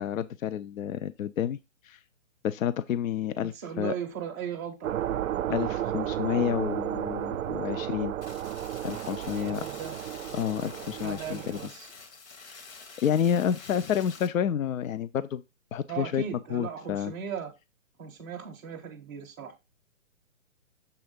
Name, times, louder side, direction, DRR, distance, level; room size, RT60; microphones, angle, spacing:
voice 1, 0.0-1.6 1.8-2.0 2.4-3.9 5.5-8.1 8.8-9.6 10.3-11.6 12.4-12.6 13.0-15.4 15.7-16.2 16.5-17.1, left 9 dB, 75° left, 0.6 m, -29 dB
voice 2, 3.4-5.0 9.3-9.9 11.0-11.9 15.9-17.5 18.0-19.5, right 8 dB, 10° right, 0.5 m, -37 dB
sound 1, 4.8-11.7, right 11 dB, 80° right, 0.5 m, -33 dB
sound 2, 8.2-14.3, left 4 dB, 55° left, 1.6 m, -48 dB
7.0 x 3.5 x 5.1 m
hypercardioid pair, 150°, 40 cm